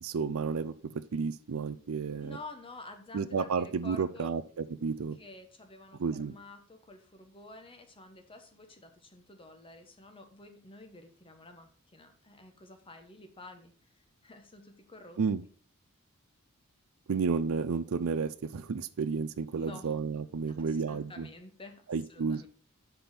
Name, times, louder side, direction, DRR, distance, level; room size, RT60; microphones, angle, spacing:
voice 1, 0.0-2.4 3.1-5.2 6.0-6.3 15.2-15.4 17.1-21.3 21.9-22.5, right 5 dB, 65° right, 0.5 m, -32 dB
voice 2, 2.2-4.3 5.2-15.2 19.5-20.0 20.7-21.8 22.1-22.5, left 2 dB, 25° left, 1.1 m, -50 dB
5.9 x 5.2 x 5.9 m
head